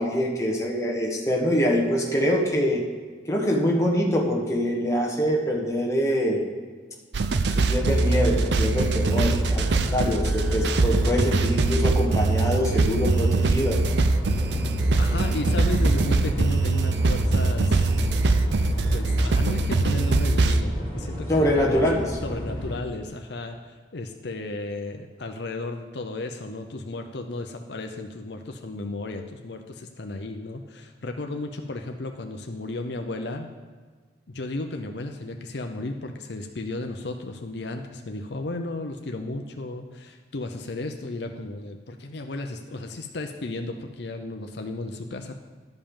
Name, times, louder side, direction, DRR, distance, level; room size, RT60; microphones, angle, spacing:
voice 1, 0.0-2.8 3.3-6.4 7.5-14.0 21.3-22.0, equal, 15° left, -2 dB, 1.4 m, -24 dB
sound 1, 7.1-20.6, right 3 dB, 65° right, 0.5 m, -23 dB
sound 2, 7.8-22.8, equal, 25° right, 1.7 m, -29 dB
voice 2, 15.0-17.9 18.9-21.8 22.2-33.5 34.3-45.3, left 2 dB, 65° left, 4 dB, 0.7 m, -34 dB
11.5 x 5.4 x 7.1 m, 1.5 s
head